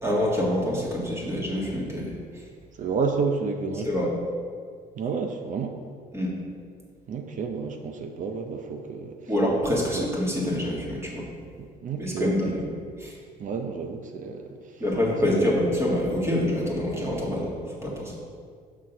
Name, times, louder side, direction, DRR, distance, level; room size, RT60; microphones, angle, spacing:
voice 1, 0.0-2.4 3.8-4.1 6.1-6.3 9.3-11.3 12.0-12.6 13.0-13.2 14.8-18.1, left 1 dB, 15° right, -3 dB, 1.7 m, -26 dB
voice 2, 2.8-3.9 4.9-5.8 7.1-9.3 9.9-10.1 11.6-12.7 13.4-14.8 15.2-15.6, right 5 dB, 50° right, 5 dB, 0.6 m, -31 dB
6.7 x 3.6 x 5.9 m, 2.1 s
cardioid pair, 110°, 17 cm